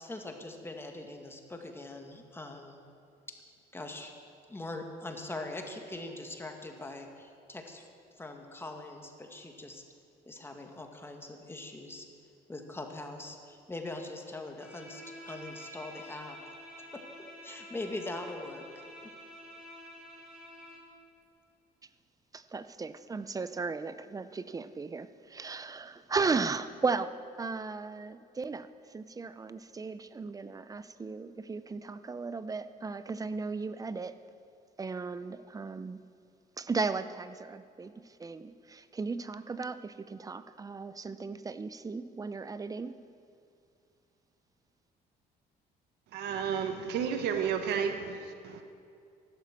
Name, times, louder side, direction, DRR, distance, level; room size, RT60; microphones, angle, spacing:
voice 1, 0.0-2.8 3.7-4.1 4.5-7.9 8.2-9.8 10.3-12.1 12.5-16.4 16.9-19.1, left 2 dB, 15° left, 3 dB, 1.9 m, -42 dB
Bowed string instrument, 14.6-20.9, equal, 5° right, 4.6 m, -49 dB
voice 2, 22.3-27.1 27.4-34.1 34.8-36.0 36.6-43.0, right 4 dB, 20° right, 13 dB, 0.7 m, -36 dB
voice 3, 46.1-48.6, right 7 dB, 80° right, 6 dB, 1.2 m, -32 dB
15.0 x 12.0 x 7.5 m, 2.5 s
cardioid pair, 110°, 17 cm